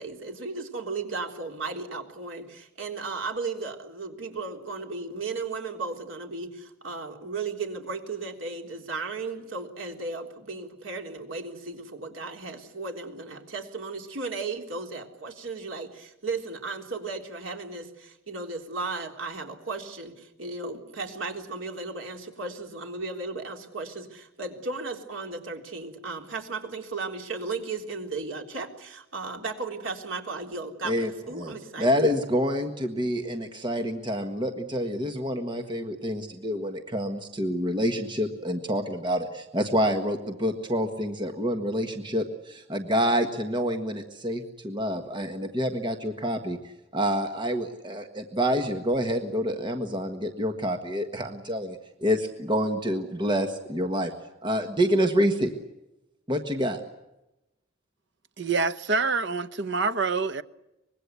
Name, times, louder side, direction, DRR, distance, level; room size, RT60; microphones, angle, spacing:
voice 1, 0.0-31.9, right 3 dB, 75° right, 3.7 m, -35 dB
voice 2, 30.8-46.6 46.9-54.1 54.4-55.5 56.3-56.8, equal, 25° right, 1.5 m, -27 dB
voice 3, 58.4-60.4, right 4 dB, 60° right, 1.1 m, -26 dB
25.0 x 21.5 x 8.2 m
head